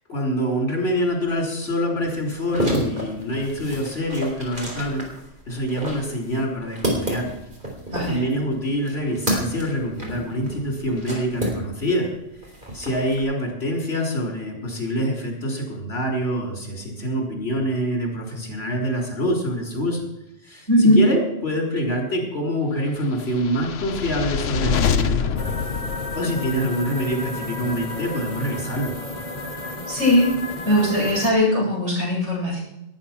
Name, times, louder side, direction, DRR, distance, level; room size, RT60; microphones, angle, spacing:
voice 1, 0.1-5.0 5.5-7.3 8.1-12.1 12.4-20.1 20.4-25.6 26.1-28.9, equal, 60° left, 0 dB, 4.3 m, -25 dB
sound 1, 2.3-12.0 12.3-13.2, equal, 40° right, 4.1 m, -30 dB
voice 2, 7.9-8.2 20.7-21.0 29.9-30.3 30.6-32.6, left 1 dB, 70° right, -5 dB, 8.2 m, -19 dB
sound 2, 23.3-26.7, left 7 dB, 85° left, 1.1 m, -25 dB
sound 3, 25.4-31.3, left 2 dB, 30° left, 1.9 m, -32 dB
19.0 x 9.1 x 6.0 m, 0.87 s
omnidirectional pair, 1.2 m